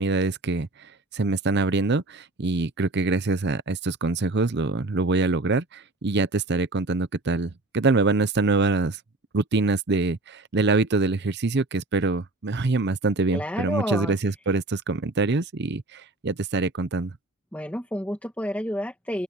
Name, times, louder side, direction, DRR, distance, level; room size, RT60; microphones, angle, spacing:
voice 1, 0.0-9.0 9.3-17.1, right 3 dB, 55° right, 0.8 m, -24 dB
voice 2, 13.3-14.1 17.5-19.2, equal, 10° left, 2.3 m, -30 dB
open air
head